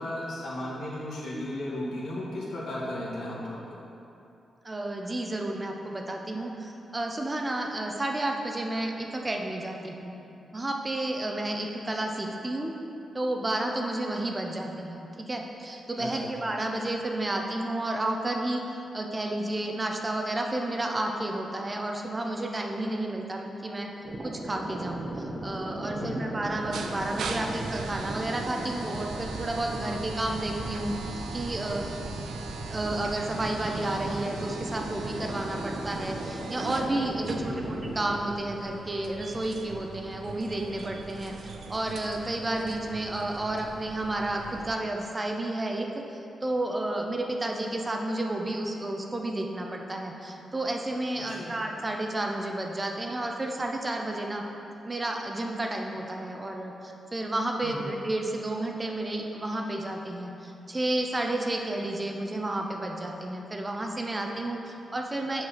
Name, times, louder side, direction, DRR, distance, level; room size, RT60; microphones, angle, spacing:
voice 1, 0.0-3.8 16.0-16.3 25.9-26.2 37.2-37.7 51.1-51.5 57.6-57.8, left 1 dB, 80° left, -5 dB, 1.6 m, -35 dB
voice 2, 4.6-10.1 10.5-12.7 13.1-23.9 24.2-30.9 31.3-31.8 32.7-54.4 54.8-65.4, right 1 dB, 30° right, 2 dB, 0.8 m, -31 dB
sound 1, 24.0-38.2, right 1 dB, 45° right, 1.1 m, -37 dB
sound 2, 26.5-44.7, right 4 dB, 80° right, 0.5 m, -40 dB
6.1 x 4.8 x 5.7 m, 2.8 s
cardioid pair, 70°, 0 cm